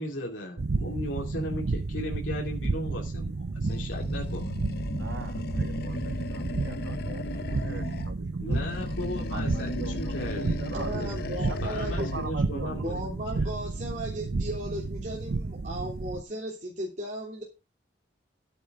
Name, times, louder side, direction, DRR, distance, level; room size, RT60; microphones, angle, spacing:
voice 1, 0.0-4.5 8.4-11.2 11.6-13.5, left 1 dB, 85° left, 2.8 m, -37 dB
sound 1, 0.6-16.2, right 3 dB, 60° right, 0.6 m, -32 dB
Animal, 3.6-8.2 8.5-12.4, left 3 dB, 55° left, 0.7 m, -36 dB
voice 2, 4.6-11.0 11.5-13.1, right 3 dB, 80° right, 1.8 m, -42 dB
voice 3, 10.7-12.1 12.8-17.4, right 1 dB, 40° right, 3.0 m, -36 dB
13.5 x 9.4 x 3.7 m
head